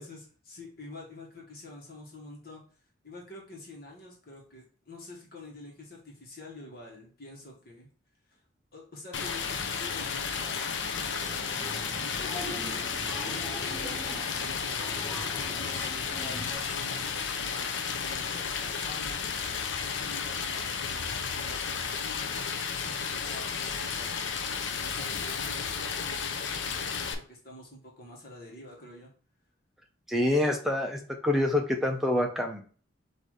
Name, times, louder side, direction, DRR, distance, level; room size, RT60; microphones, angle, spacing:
voice 1, 0.0-2.6 3.0-7.9 8.3-8.4 8.7-19.2 19.8-24.1 24.4-29.1, left 1 dB, 50° left, -2 dB, 1.3 m, -47 dB
Stream, 9.1-27.1, left 6 dB, 70° left, 0.5 m, -33 dB
Applause, 11.2-16.6, equal, 20° left, 1.3 m, -42 dB
voice 2, 30.1-32.6, left 1 dB, ahead, 1 dB, 0.6 m, -26 dB
4.0 x 2.7 x 4.7 m, 0.42 s
head